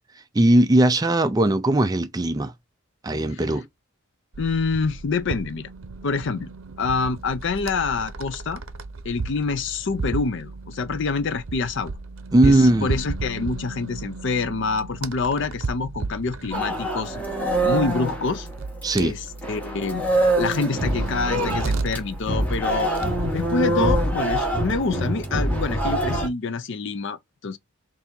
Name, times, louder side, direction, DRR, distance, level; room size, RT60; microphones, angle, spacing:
voice 1, 0.3-2.5 3.0-3.7 12.3-12.9 18.8-19.1, right 1 dB, 15° right, 0.3 m, -19 dB
sound 1, 4.3-23.6, right 3 dB, 65° right, 0.6 m, -34 dB
voice 2, 4.4-5.7 6.0-6.5 6.8-8.6 9.0-11.9 12.4-17.2 17.6-18.5 18.9-20.0 20.4-22.9 23.3-27.6, left 4 dB, 55° left, 0.5 m, -26 dB
sound 2, 16.5-19.1 19.4-26.3, right 1 dB, 5° left, 1.1 m, -25 dB
4.2 x 2.7 x 3.3 m
head